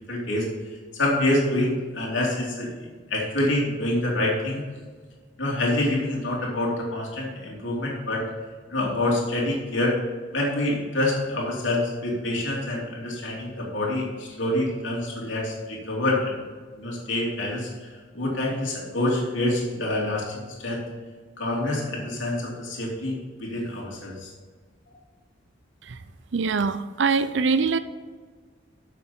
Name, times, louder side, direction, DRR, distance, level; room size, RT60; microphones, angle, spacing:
voice 1, 0.1-0.5 0.9-4.6 5.4-8.3 8.7-9.9 10.3-16.4 16.8-17.7 18.1-20.8 21.4-24.3, left 1 dB, 75° left, -3 dB, 3.0 m, -26 dB
voice 2, 26.3-27.8, right 4 dB, 70° right, 12 dB, 0.5 m, -23 dB
12.5 x 7.3 x 4.4 m, 1.5 s
head